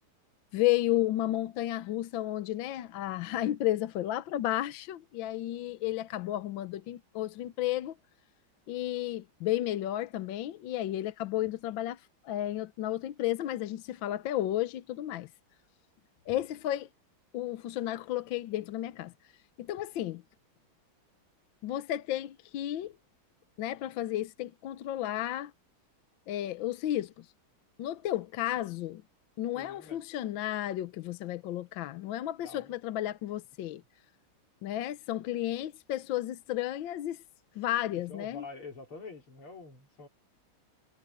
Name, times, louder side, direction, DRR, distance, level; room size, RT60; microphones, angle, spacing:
voice 1, 0.5-7.9 8.7-12.0 12.2-15.3 16.3-16.9 17.3-19.1 19.6-20.2 21.6-22.9 23.6-25.5 26.3-27.1 27.8-29.0 29.4-33.8 34.6-37.2 37.6-38.4, left 13 dB, 70° left, 1.4 m, -32 dB
voice 2, 29.5-30.3 32.4-33.1 38.1-40.1, left 3 dB, 85° left, 4.7 m, -47 dB
omnidirectional pair, 2.3 m